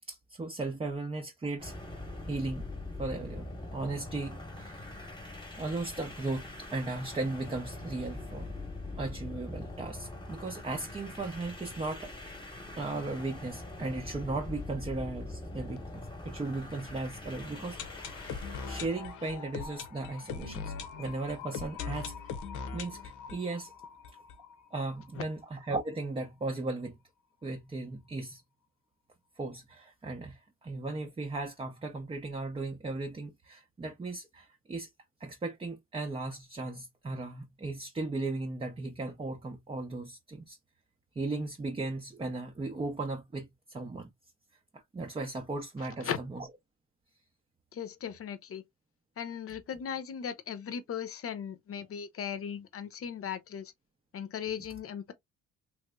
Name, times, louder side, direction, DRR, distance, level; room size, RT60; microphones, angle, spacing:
voice 1, 0.1-1.7 2.3-2.7 3.0-4.8 5.6-8.5 8.9-12.1 12.8-18.3 18.7-22.1 22.7-23.7 24.7-27.0 27.4-28.4 29.4-34.9 35.2-40.6 41.2-44.1 44.7-46.5, right 2 dB, 20° right, 0.6 m, -36 dB
sound 1, 1.6-18.9, left 2 dB, 15° left, 1.1 m, -43 dB
sound 2, 17.3-25.1 25.3-25.4 25.6-25.7 26.2-26.3, left 6 dB, 80° left, 0.8 m, -41 dB
voice 2, 45.8-46.2 47.7-48.6 49.2-53.7 54.1-55.1, left 8 dB, 50° left, 0.7 m, -37 dB
3.1 x 3.0 x 2.2 m
cardioid pair, 90°, 30 cm